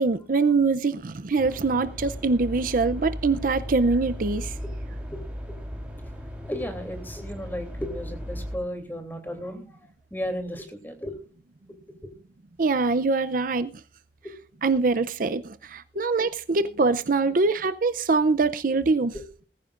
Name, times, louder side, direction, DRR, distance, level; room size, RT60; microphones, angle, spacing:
voice 1, 0.0-4.6 12.6-13.7 14.6-19.1, right 3 dB, 50° right, 0.5 m, -23 dB
sound 1, 1.4-8.6, equal, 5° right, 3.5 m, -36 dB
voice 2, 6.4-9.8 10.1-11.1 12.0-12.1 14.2-14.3 15.9-16.0 19.1-19.2, equal, 10° left, 2.9 m, -34 dB
19.5 x 15.0 x 2.5 m
head